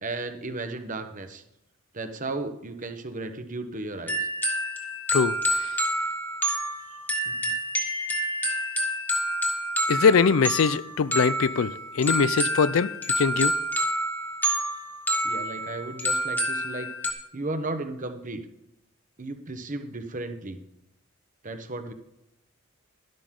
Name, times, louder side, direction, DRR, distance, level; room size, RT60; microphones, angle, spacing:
voice 1, 0.0-1.4 1.9-4.3 7.4-7.5 15.2-16.9 17.3-18.4 19.2-20.6 21.4-21.9, right 2 dB, 40° right, 1.1 m, -34 dB
sound 1, 4.1-17.1, right 1 dB, 10° left, 1.6 m, -28 dB
voice 2, 5.1-5.7 9.9-13.5, left 5 dB, 70° left, 0.4 m, -22 dB
12.0 x 12.0 x 3.8 m
head